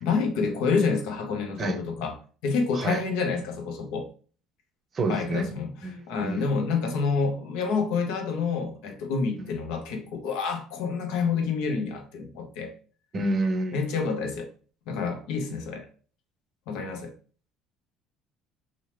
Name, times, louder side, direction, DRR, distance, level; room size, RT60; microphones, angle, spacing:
voice 1, 0.0-2.1 2.4-4.1 5.1-12.7 13.7-14.5 14.9-15.9 16.7-17.1, left 5 dB, 80° left, 0.6 m, -28 dB
voice 2, 4.9-5.5 5.8-6.5 9.4-9.5 13.1-13.8, right 2 dB, 35° right, 0.5 m, -28 dB
2.9 x 2.0 x 3.2 m
supercardioid pair, 95°, 0 cm